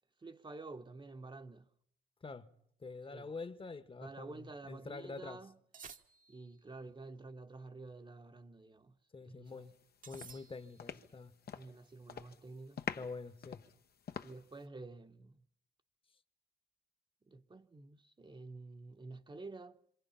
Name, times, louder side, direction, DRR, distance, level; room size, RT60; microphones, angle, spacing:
voice 1, 0.2-1.7 3.1-3.3 4.0-5.6 6.3-9.6 11.5-12.9 14.2-15.4 17.3-19.8, right 3 dB, 25° right, 1.1 m, -50 dB
voice 2, 2.8-5.4 9.1-9.7 10.1-11.3 12.9-13.6, left 4 dB, 25° left, 1.4 m, -46 dB
sound 1, 5.7-6.6 10.0-11.0, right 5 dB, 40° right, 1.2 m, -54 dB
sound 2, 9.6-9.8 10.1-11.8 12.1-12.4 12.8-14.6, left 7 dB, 50° left, 1.1 m, -45 dB
26.5 x 26.5 x 5.8 m
cardioid pair, 90°, 20 cm